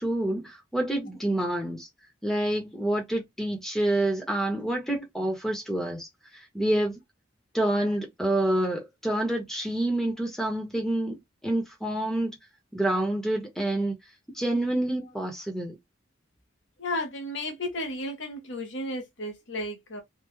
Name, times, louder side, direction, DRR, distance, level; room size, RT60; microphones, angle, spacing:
voice 1, 0.0-1.9 2.2-6.1 6.3-7.0 7.5-12.3 12.7-13.9 14.3-15.8, right 1 dB, ahead, 1.1 m, -28 dB
voice 2, 16.8-20.0, left 1 dB, 65° left, 1.0 m, -33 dB
3.5 x 2.3 x 3.2 m
head